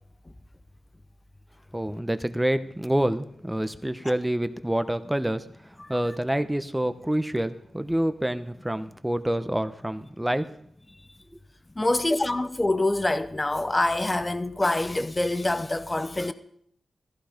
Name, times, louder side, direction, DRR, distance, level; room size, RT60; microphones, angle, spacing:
voice 1, 1.7-5.4 5.9-10.5, right 1 dB, 5° right, 0.9 m, -27 dB
voice 2, 11.8-16.3, left 2 dB, 20° left, 0.9 m, -25 dB
15.5 x 14.5 x 5.2 m
wide cardioid pair, 95°, 0 cm